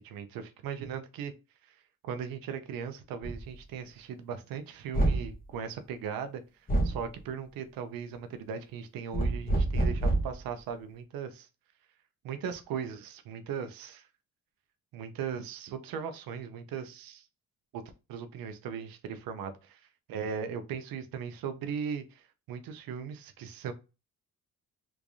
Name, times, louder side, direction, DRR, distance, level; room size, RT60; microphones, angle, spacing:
voice 1, 0.0-1.3 1.6-6.4 6.8-11.5 12.2-14.1 14.9-17.3 17.7-17.8 18.1-19.5 20.1-23.7, right 7 dB, 85° right, 0.7 m, -38 dB
sound 1, 3.2-3.4 4.9-5.3 6.7-7.0 9.1-10.4, right 2 dB, 25° left, 1.2 m, -27 dB
3.5 x 3.2 x 2.6 m
cardioid pair, 110°, 34 cm